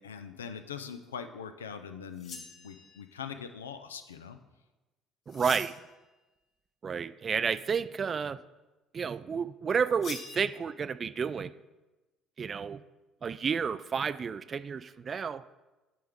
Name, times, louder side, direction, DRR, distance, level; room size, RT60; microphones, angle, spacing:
voice 1, 0.0-4.4, left 7 dB, 90° left, 9 dB, 0.4 m, -42 dB
sound 1, 2.2-3.1 5.3-6.0 10.0-10.4, left 4 dB, 55° left, 1.1 m, -43 dB
voice 2, 5.3-5.7 6.8-8.4 8.9-11.5 12.4-12.8 13.2-15.4, right 6 dB, 40° right, 15 dB, 0.3 m, -31 dB
8.6 x 4.9 x 3.6 m, 1.1 s
hypercardioid pair, 55°, 0 cm